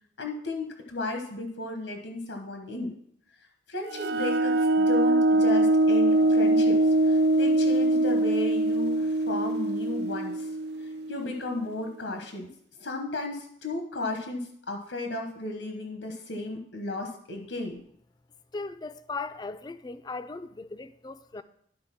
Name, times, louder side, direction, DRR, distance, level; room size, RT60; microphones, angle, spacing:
voice 1, 0.2-2.9 3.7-10.5 10.8-12.5 12.8-17.8, left 2 dB, 90° left, 1.1 m, -34 dB
sound 1, 3.9-11.4, right 2 dB, 60° right, 0.4 m, -23 dB
voice 2, 18.5-21.4, left 3 dB, 20° left, 0.3 m, -38 dB
11.5 x 3.8 x 5.8 m
head